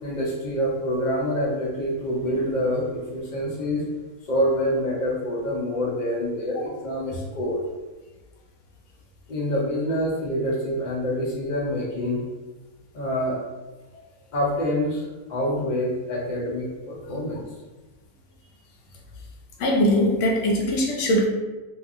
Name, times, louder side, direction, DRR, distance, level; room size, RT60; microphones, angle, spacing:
voice 1, 0.0-3.8 4.3-7.6 9.3-12.2 12.9-13.4 14.3-15.0 15.3-17.4, equal, 45° left, -4 dB, 0.6 m, -26 dB
voice 2, 19.6-21.3, equal, 65° left, -1 dB, 0.9 m, -21 dB
2.8 x 2.4 x 2.5 m, 1.2 s
omnidirectional pair, 1.5 m